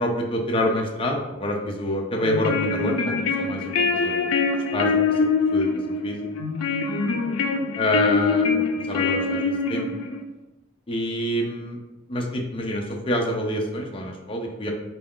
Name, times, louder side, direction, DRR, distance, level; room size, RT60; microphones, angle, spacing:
voice 1, 0.0-4.3 4.7-5.1 5.5-6.3 7.8-8.5 8.9-9.9 10.9-11.8 12.1-14.7, left 1 dB, 25° left, 1 dB, 0.4 m, -27 dB
sound 1, 2.2-10.2, left 4 dB, 85° left, 0.4 m, -24 dB
4.1 x 2.3 x 3.6 m, 1.0 s
head